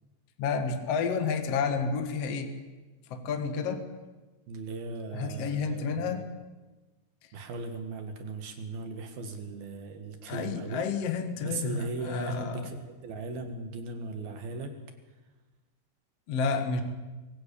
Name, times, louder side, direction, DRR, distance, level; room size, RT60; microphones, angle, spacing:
voice 1, 0.4-2.5 3.1-3.9 5.1-6.3 10.3-12.7 16.3-16.8, left 5 dB, 55° left, 6 dB, 1.7 m, -30 dB
voice 2, 4.5-6.3 7.3-10.9 11.4-14.7, right 3 dB, 60° right, 6 dB, 3.4 m, -38 dB
24.0 x 17.5 x 8.6 m, 1.2 s
omnidirectional pair, 5.4 m